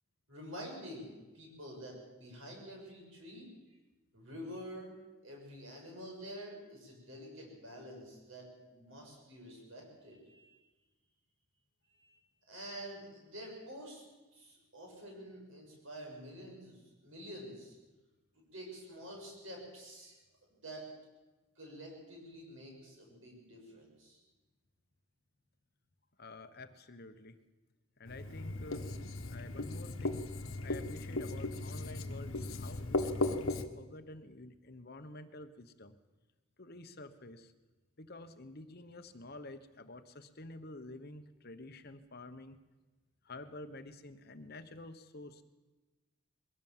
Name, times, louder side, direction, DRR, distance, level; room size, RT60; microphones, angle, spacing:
voice 1, 0.3-3.8 4.1-5.0 5.2-10.6 11.9-12.2 12.5-14.0 14.3-17.8 18.3-20.2 20.5-20.9 21.6-24.2, equal, 65° right, 0 dB, 7.2 m, -48 dB
voice 2, 26.2-27.4 28.0-28.9 29.2-30.2 30.6-35.9 36.6-37.5 38.0-42.6 43.2-45.4, left 2 dB, 45° left, 9 dB, 1.0 m, -49 dB
Writing, 28.1-33.6, left 2 dB, 70° left, 1.3 m, -37 dB
22.0 x 16.5 x 7.4 m, 1.2 s
head